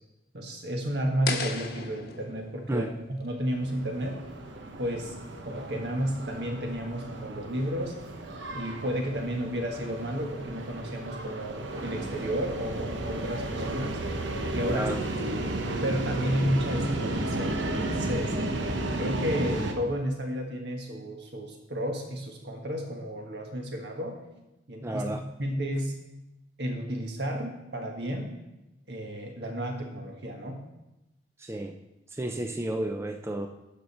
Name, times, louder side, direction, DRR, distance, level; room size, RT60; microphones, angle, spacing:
voice 1, 0.3-2.9 3.2-4.2 4.8-5.1 5.4-7.9 8.5-14.0 14.5-14.9 15.8-18.3 19.0-24.2 24.7-25.9 26.6-28.3 28.9-30.6, equal, 65° right, 2 dB, 1.5 m, -32 dB
sound 1, 1.3-4.3, left 4 dB, 60° left, 1.1 m, -37 dB
sound 2, 3.5-19.7, right 1 dB, 85° right, 1.0 m, -33 dB
voice 2, 14.7-15.0 15.3-15.4 24.8-25.2 31.4-31.7 32.2-33.5, right 1 dB, 15° right, 5 dB, 0.4 m, -31 dB
11.5 x 5.7 x 4.3 m, 0.96 s
head